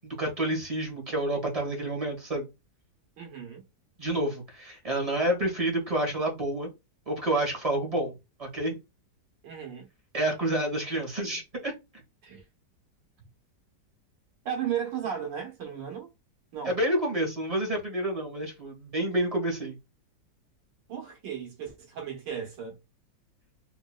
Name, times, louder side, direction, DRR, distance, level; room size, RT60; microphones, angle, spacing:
voice 1, 0.0-2.5 4.0-6.7 7.1-8.1 8.4-8.8 10.1-11.7 16.6-19.7, right 1 dB, 20° right, 1.3 m, -29 dB
voice 2, 3.2-3.6 9.4-9.9 12.2-12.4 14.5-16.1 16.5-16.8 20.9-22.8, right 8 dB, 85° right, 1.9 m, -35 dB
4.3 x 3.0 x 2.3 m
omnidirectional pair, 1.9 m